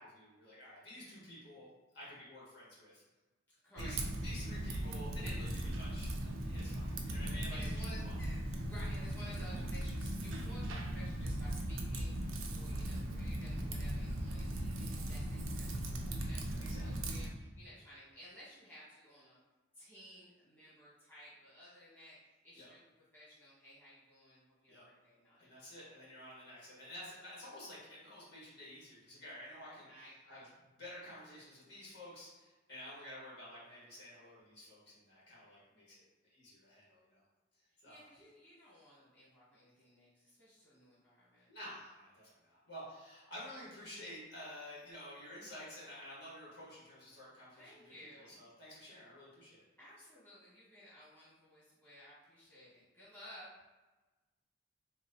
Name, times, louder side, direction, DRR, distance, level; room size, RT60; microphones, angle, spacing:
voice 1, 0.0-1.7 1.9-3.0 3.7-8.1 16.6-16.9 21.6-21.7 22.5-22.7 24.7-24.8 25.4-29.9 30.3-30.4 30.8-36.0 36.3-37.2 37.8-38.0 41.5-49.6, left 1 dB, 55° left, -7 dB, 1.3 m, -51 dB
voice 2, 3.6-4.0 7.5-19.4 19.7-22.2 22.4-22.8 23.1-25.5 29.9-30.5 37.8-41.5 47.6-48.4 49.8-53.5, left 1 dB, 10° left, -10 dB, 1.3 m, -56 dB
Typing, 3.8-17.3, right 1 dB, 85° right, 0.5 m, -38 dB
3.3 x 2.8 x 2.7 m, 1.2 s
head